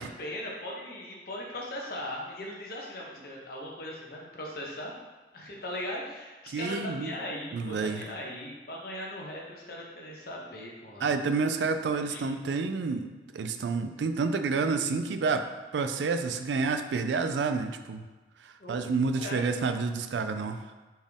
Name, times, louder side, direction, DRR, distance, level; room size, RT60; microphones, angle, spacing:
voice 1, 0.0-4.9 5.3-11.1 12.1-12.2 18.6-18.9 19.1-19.5, left 1 dB, 55° left, -2 dB, 0.9 m, -39 dB
voice 2, 6.5-7.1 7.5-8.1 11.0-15.5 15.7-18.1 18.4-20.7, right 4 dB, 85° right, 8 dB, 0.4 m, -29 dB
4.3 x 3.5 x 3.5 m, 1.3 s
head